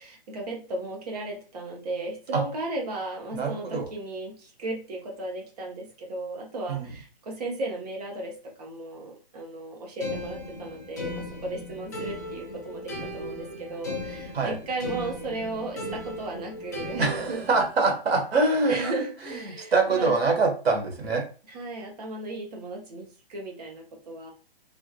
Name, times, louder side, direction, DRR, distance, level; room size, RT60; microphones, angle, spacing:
voice 1, 0.0-17.4 18.6-20.2 21.5-24.3, right 2 dB, 40° right, 0 dB, 1.0 m, -35 dB
voice 2, 3.3-3.8 6.7-6.8 14.3-14.5 17.0-18.9 19.7-21.2, right 3 dB, 80° right, 2 dB, 1.5 m, -24 dB
sound 1, 10.0-17.7, left 1 dB, 20° left, 0.3 m, -37 dB
3.4 x 2.5 x 2.3 m, 0.37 s
hypercardioid pair, 165°, 30 cm